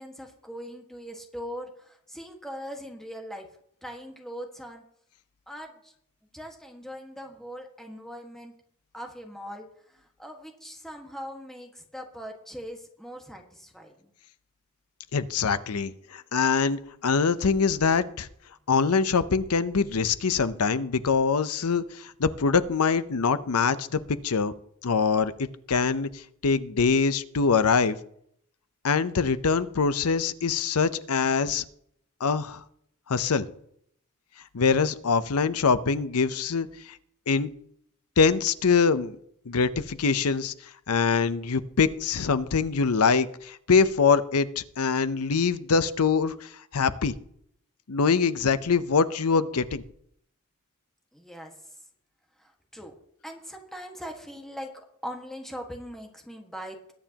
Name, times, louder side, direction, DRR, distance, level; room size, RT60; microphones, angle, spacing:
voice 1, 0.0-3.5 3.8-4.8 5.5-5.9 6.3-8.5 8.9-14.1 51.1-51.5 52.4-52.9 53.2-56.9, equal, ahead, 2 dB, 1.6 m, -41 dB
voice 2, 15.1-18.3 18.7-24.5 24.8-28.0 28.8-31.6 32.2-32.6 33.1-33.5 34.5-36.7 37.3-37.5 38.2-39.2 39.5-40.5 40.9-47.1 47.9-49.8, left 5 dB, 75° left, 14 dB, 0.7 m, -24 dB
21.0 x 9.2 x 2.9 m, 0.69 s
head